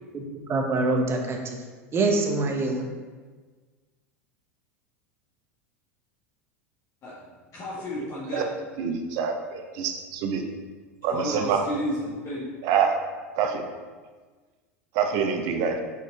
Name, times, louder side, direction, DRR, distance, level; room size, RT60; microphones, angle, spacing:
voice 1, 0.5-1.6 1.9-2.9, right 2 dB, 30° right, 3 dB, 1.1 m, -24 dB
voice 2, 7.5-8.5 11.1-12.5, left 1 dB, 40° left, -7 dB, 1.5 m, -32 dB
voice 3, 8.8-10.4 11.0-11.6 12.6-13.0 13.3-13.7 14.9-15.8, right 6 dB, 55° right, 5 dB, 0.9 m, -26 dB
5.6 x 5.2 x 4.0 m, 1.4 s
hypercardioid pair, 85°, 8 cm